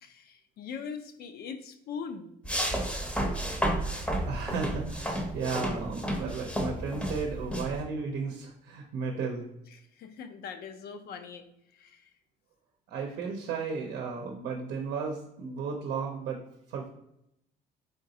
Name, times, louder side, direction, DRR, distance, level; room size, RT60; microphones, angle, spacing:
voice 1, 0.0-2.3 9.9-11.4 11.7-12.1, left 6 dB, 65° left, 7 dB, 0.5 m, -41 dB
sound 1, 2.4-7.8, equal, 5° left, 0.7 m, -32 dB
voice 2, 4.0-9.5 12.9-16.4 16.7-16.9, right 5 dB, 80° right, 1 dB, 0.7 m, -34 dB
3.8 x 3.6 x 2.7 m, 0.79 s
cardioid pair, 110°, 17 cm